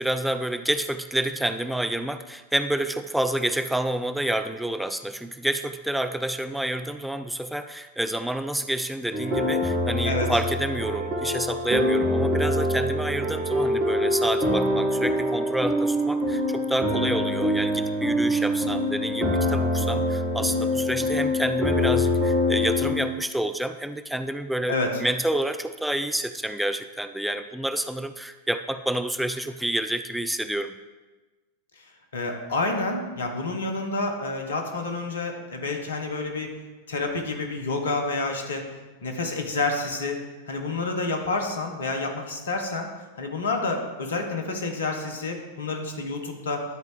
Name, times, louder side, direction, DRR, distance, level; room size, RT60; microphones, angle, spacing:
voice 1, 0.0-30.7, right 1 dB, 5° right, 9 dB, 0.3 m, -29 dB
sound 1, 9.1-22.9, left 1 dB, 25° right, 2.2 m, -24 dB
voice 2, 32.1-36.5 36.9-38.7 39.0-42.9 43.2-46.6, left 3 dB, 65° left, 3 dB, 1.3 m, -29 dB
11.5 x 4.6 x 4.7 m, 1.2 s
figure-of-eight pair, 90°, 0 cm